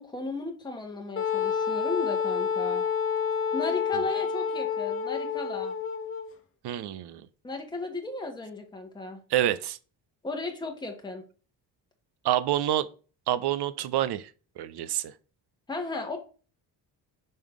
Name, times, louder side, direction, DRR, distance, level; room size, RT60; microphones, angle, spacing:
voice 1, 0.0-2.8 3.5-5.7 7.4-9.2 10.2-11.2 15.7-16.2, left 3 dB, 10° left, 1.2 m, -35 dB
Wind instrument woodwind instrument, 1.2-6.3, left 6 dB, 30° left, 0.8 m, -29 dB
voice 2, 6.6-7.3 9.3-9.8 12.2-12.9 13.3-14.3 14.6-15.1, right 12 dB, 65° right, 0.6 m, -27 dB
5.4 x 3.7 x 4.8 m
cardioid pair, 120°, 42 cm